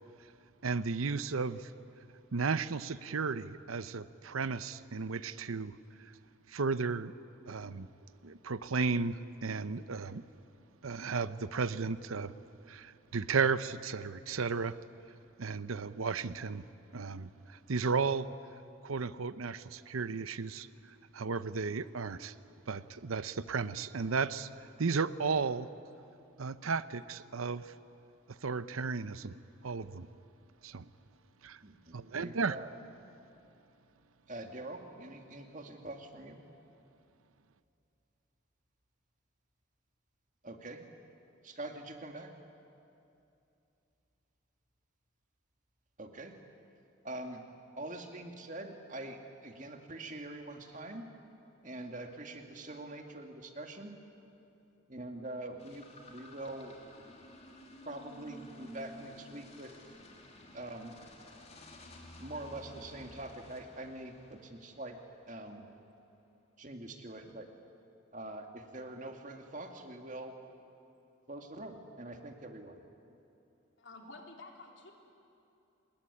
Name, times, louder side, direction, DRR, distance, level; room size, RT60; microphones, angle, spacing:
voice 1, 0.6-1.7 2.3-5.8 6.1-6.2 6.5-7.1 7.5-7.9 8.2-10.2 10.8-12.3 12.7-14.8 15.4-16.6 16.9-18.3 18.8-22.3 22.7-25.7 26.4-27.7 28.3-30.1 30.6-30.8 31.4-31.6 31.9-32.6, right 4 dB, 85° right, 14 dB, 0.8 m, -34 dB
voice 2, 31.6-32.7 34.3-36.4 40.4-40.9 41.4-42.3 46.0-46.3 47.0-47.4 47.8-51.1 51.6-53.9 54.9-56.7 57.8-59.7 60.5-61.0 62.2-65.0 65.3-65.7 66.6-67.5 68.1-70.3 71.3-72.8, right 1 dB, 40° right, 4 dB, 2.1 m, -44 dB
sound 1, 55.6-65.1, left 1 dB, 30° left, 3.0 m, -53 dB
voice 3, 73.8-74.9, left 2 dB, 60° left, 1 dB, 3.7 m, -50 dB
26.0 x 21.0 x 9.9 m, 2.8 s
head